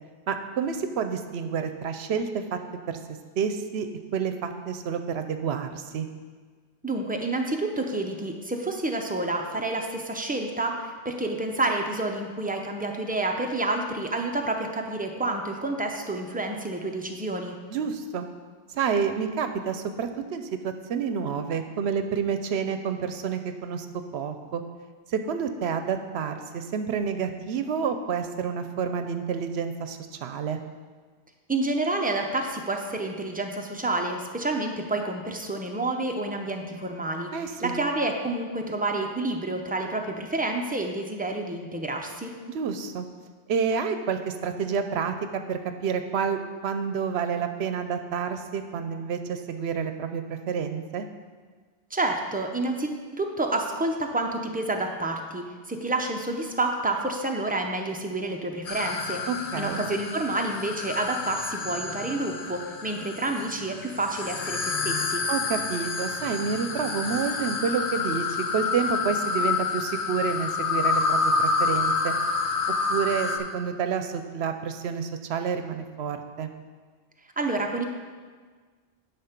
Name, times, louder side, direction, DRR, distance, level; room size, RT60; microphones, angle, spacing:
voice 1, 0.3-2.6 2.9-3.0 3.4-6.1 17.7-18.3 18.7-23.9 24.1-24.6 25.1-30.6 37.3-37.7 42.5-43.0 43.5-51.1 59.3-59.8 65.3-72.1 72.9-76.5, right 6 dB, 75° right, 8 dB, 0.9 m, -29 dB
voice 2, 6.8-17.6 31.5-37.3 37.6-42.3 51.9-59.2 59.6-65.2 77.4-77.8, right 2 dB, 10° right, 2 dB, 0.5 m, -29 dB
sound 1, 58.7-73.4, left 4 dB, 55° left, 0.9 m, -28 dB
10.5 x 4.0 x 5.8 m, 1.5 s
omnidirectional pair, 1.1 m